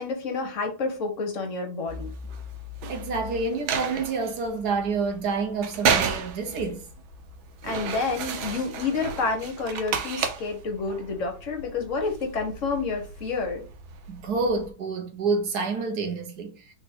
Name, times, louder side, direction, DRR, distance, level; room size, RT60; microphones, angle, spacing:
voice 1, 0.0-2.1 7.6-13.6, left 4 dB, 50° left, 1.0 m, -29 dB
sound 1, 1.9-14.7, right 6 dB, 85° right, 1.5 m, -33 dB
voice 2, 2.9-6.9 14.1-16.6, right 4 dB, 60° right, 1.3 m, -28 dB
3.5 x 3.3 x 4.3 m
omnidirectional pair, 2.1 m